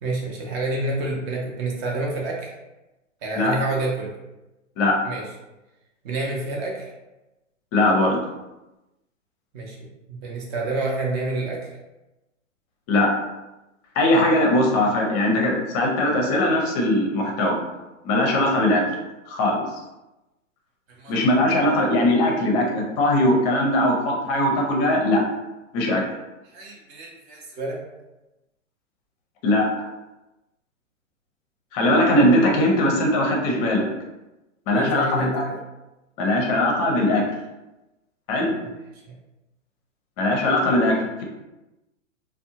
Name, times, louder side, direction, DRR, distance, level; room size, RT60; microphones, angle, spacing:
voice 1, 0.0-2.5 3.2-4.1 5.0-5.2 6.0-6.9 9.5-11.7 20.9-21.1 26.5-27.8 34.7-35.6 39.1-39.2, right 2 dB, 30° right, -1 dB, 0.6 m, -28 dB
voice 2, 7.7-8.2 12.9-13.1 14.0-17.6 18.0-18.8 19.3-19.6 21.1-25.2 25.7-26.0 29.4-29.6 31.7-33.8 34.7-35.4 36.2-37.2 38.3-38.5 40.2-40.9, left 1 dB, 30° left, 0 dB, 0.6 m, -20 dB
2.6 x 2.2 x 2.7 m, 1.0 s
hypercardioid pair, 130°, 39 cm